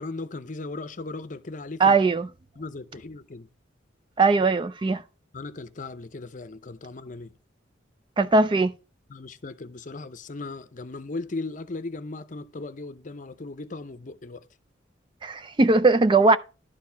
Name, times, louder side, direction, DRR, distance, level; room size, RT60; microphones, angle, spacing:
voice 1, 0.0-2.0 2.6-3.5 5.3-7.3 9.1-14.4, left 3 dB, 40° left, 0.6 m, -37 dB
voice 2, 1.8-2.3 4.2-5.0 8.2-8.7 15.2-16.4, right 3 dB, 25° right, 0.3 m, -19 dB
11.5 x 4.6 x 5.6 m
head